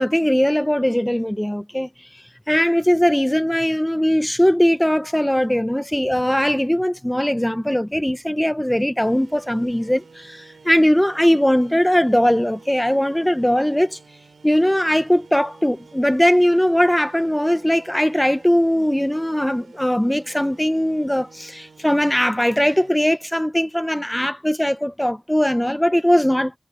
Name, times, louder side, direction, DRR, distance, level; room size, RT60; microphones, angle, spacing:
voice 1, 0.0-1.9 2.5-14.0 14.4-26.5, equal, 5° left, 1.1 m, -20 dB
sound 1, 9.0-22.9, right 4 dB, 85° right, 5.2 m, -49 dB
wide cardioid pair, 60°, 0 cm